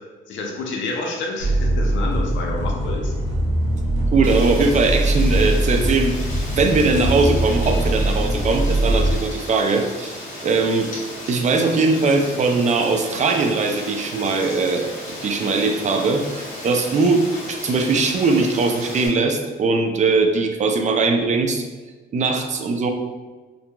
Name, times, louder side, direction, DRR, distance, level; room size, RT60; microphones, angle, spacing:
voice 1, 0.3-3.1, left 3 dB, 70° left, 0 dB, 0.6 m, -29 dB
sound 1, 1.4-9.1, right 1 dB, 85° right, 0.7 m, -21 dB
voice 2, 4.1-6.1 6.5-10.1 10.4-10.9 11.3-14.9 15.2-21.6 22.1-22.9, right 3 dB, 35° right, 4 dB, 0.4 m, -20 dB
Rain, 4.2-19.1, left 1 dB, 40° left, 1.0 m, -35 dB
2.7 x 2.6 x 2.2 m, 1.3 s
cardioid pair, 90°, 20 cm